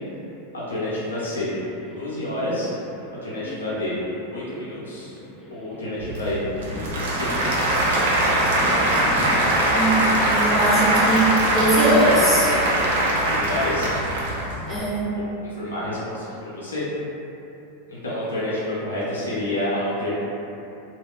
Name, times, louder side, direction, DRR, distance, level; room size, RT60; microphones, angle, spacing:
voice 1, 0.5-1.5 2.0-2.7 3.2-3.9 4.3-5.1 5.5-6.4 6.7-7.9 13.3-13.9 14.7-14.8 15.1-16.8 17.9-20.1, left 1 dB, 80° left, -9 dB, 0.6 m, -29 dB
sound 1, 0.8-12.4, left 1 dB, 15° left, 0.4 m, -39 dB
Applause / Crowd, 6.0-14.8, right 1 dB, 70° right, 0.4 m, -21 dB
voice 2, 9.7-12.5 14.7-15.1, right 1 dB, 10° right, -9 dB, 1.0 m, -21 dB
2.3 x 2.1 x 3.4 m, 2.8 s
hypercardioid pair, 95°, 0 cm